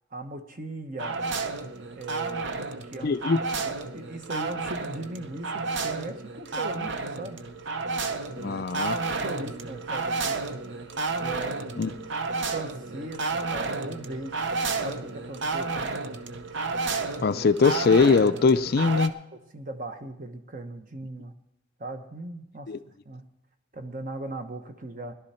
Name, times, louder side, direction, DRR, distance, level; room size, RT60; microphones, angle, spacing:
voice 1, 0.1-1.2 1.9-3.3 3.6-7.4 9.2-10.4 11.2-11.7 12.5-14.4 14.8-16.0 19.3-21.3 21.8-22.7 23.0-23.3 23.7-25.1, right 2 dB, 40° right, 6 dB, 1.1 m, -38 dB
sound 1, 1.0-19.1, right 3 dB, 60° right, 0.7 m, -31 dB
voice 2, 3.0-3.4 8.4-9.0 11.8-11.9 17.2-19.1 22.7-22.8, left 4 dB, 50° left, 13 dB, 0.4 m, -21 dB
18.0 x 11.5 x 4.4 m, 0.85 s
head